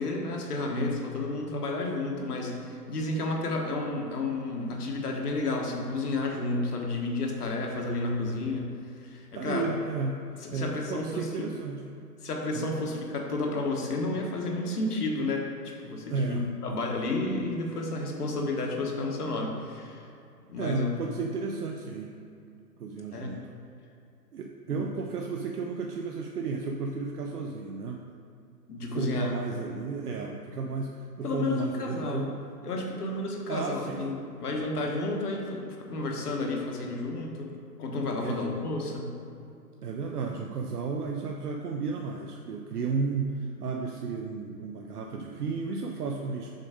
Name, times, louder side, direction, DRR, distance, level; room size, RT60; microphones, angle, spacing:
voice 1, 0.0-8.7 9.0-9.7 10.5-11.5 12.2-20.0 20.5-20.9 23.1-23.3 24.7-24.8 28.7-29.4 31.2-32.2 32.6-37.5 37.8-39.1, left 2 dB, 70° left, 0 dB, 1.4 m, -31 dB
voice 2, 9.3-10.2 10.5-11.9 12.5-12.9 16.1-16.8 20.6-22.2 22.8-23.4 24.3-28.1 28.9-32.4 33.5-34.1 38.2-38.5 39.8-46.6, right 4 dB, 70° right, 2 dB, 0.7 m, -33 dB
6.4 x 4.0 x 4.9 m, 2.6 s
hypercardioid pair, 160°, 49 cm